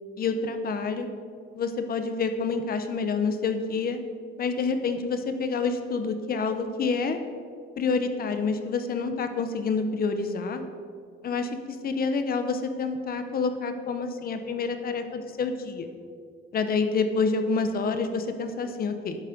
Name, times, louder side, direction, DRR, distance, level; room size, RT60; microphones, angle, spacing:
voice 1, 0.2-1.1 1.5-4.0 4.4-7.2 7.8-10.6 11.2-15.9 16.5-19.2, left 4 dB, 45° left, 8 dB, 1.1 m, -28 dB
11.5 x 11.0 x 5.2 m, 2.2 s
cardioid pair, 155°, 21 cm